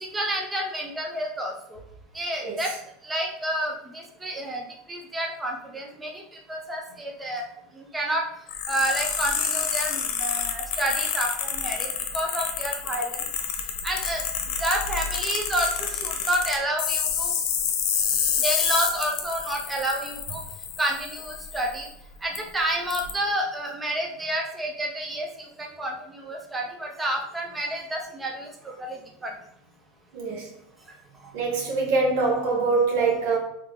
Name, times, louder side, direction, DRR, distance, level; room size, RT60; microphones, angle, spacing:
voice 1, 0.0-1.8 2.1-2.7 3.0-6.2 6.5-7.5 7.8-8.2 8.7-13.2 13.8-14.2 14.6-17.3 18.4-20.4 20.8-21.9 22.2-28.5 28.8-29.0 29.2-29.3, right 1 dB, 10° right, 0 dB, 0.6 m, -29 dB
sound 1, 8.5-21.9 22.4-22.5 22.9-23.1, left 7 dB, 65° left, 0.7 m, -28 dB
voice 2, 30.1-30.5 31.3-33.4, right 4 dB, 70° right, -1 dB, 1.4 m, -24 dB
3.7 x 3.2 x 3.5 m, 0.78 s
supercardioid pair, 125°, 0 cm